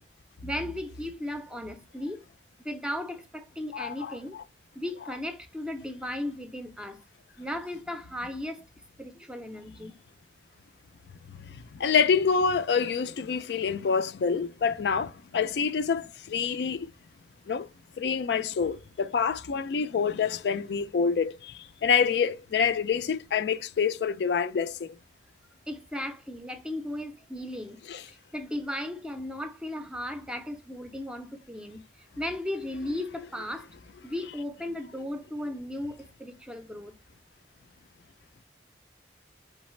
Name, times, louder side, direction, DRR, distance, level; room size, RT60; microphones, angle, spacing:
voice 1, 0.4-2.2 2.6-4.4 4.7-7.0 7.4-8.6 9.0-9.9 25.7-27.8 28.3-33.7 34.0-36.9, left 1 dB, 5° right, 0.5 m, -36 dB
voice 2, 3.7-4.4 11.3-16.9 17.5-17.7 18.0-25.0 27.9-28.0, left 6 dB, 70° left, 0.4 m, -27 dB
4.0 x 3.9 x 3.0 m
head